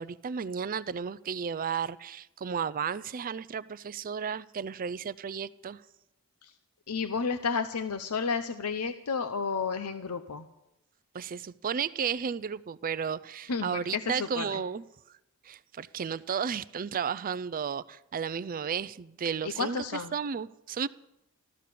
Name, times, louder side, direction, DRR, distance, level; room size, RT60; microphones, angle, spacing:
voice 1, 0.0-5.8 11.1-14.8 15.4-19.8 20.1-20.9, right 7 dB, 40° right, 17 dB, 0.4 m, -33 dB
voice 2, 6.9-10.5 13.5-14.6 19.4-20.1, left 5 dB, 80° left, 10 dB, 0.7 m, -32 dB
14.5 x 13.0 x 6.8 m, 0.88 s
head